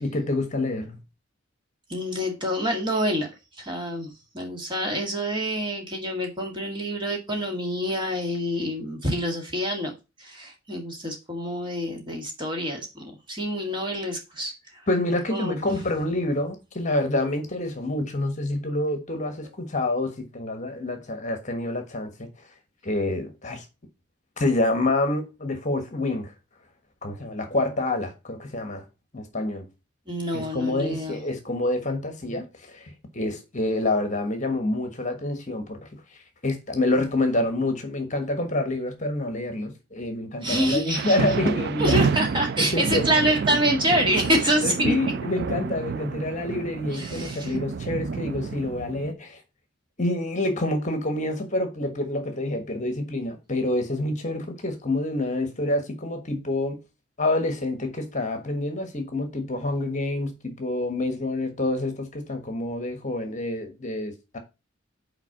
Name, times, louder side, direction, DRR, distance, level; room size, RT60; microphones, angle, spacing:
voice 1, 0.0-1.0 14.9-22.3 22.8-23.6 24.4-26.3 27.0-28.8 29.1-29.7 30.3-35.8 36.4-42.0 42.6-43.1 44.6-49.4 50.0-56.8 57.2-64.4, left 2 dB, 40° left, 1.3 m, -27 dB
voice 2, 1.9-3.3 3.6-4.1 4.3-9.9 10.2-14.8 15.3-15.6 30.1-31.2 40.4-41.2 41.8-45.1 46.9-47.6, equal, 25° right, 1.9 m, -26 dB
sound 1, 40.9-49.1, right 5 dB, 55° right, 0.3 m, -29 dB
5.9 x 4.5 x 5.9 m
head